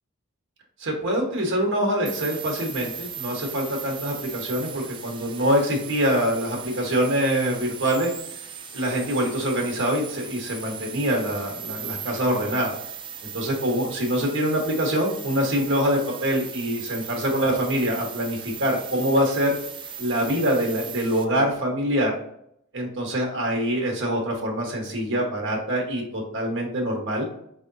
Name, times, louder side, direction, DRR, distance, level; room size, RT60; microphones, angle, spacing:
voice 1, 0.8-8.1 8.7-12.8 13.2-19.6 20.0-22.1 22.7-27.3, equal, 60° right, 0 dB, 1.2 m, -24 dB
sound 1, 2.1-21.2, right 8 dB, 25° right, 0.3 m, -38 dB
4.6 x 3.4 x 2.6 m, 0.72 s
head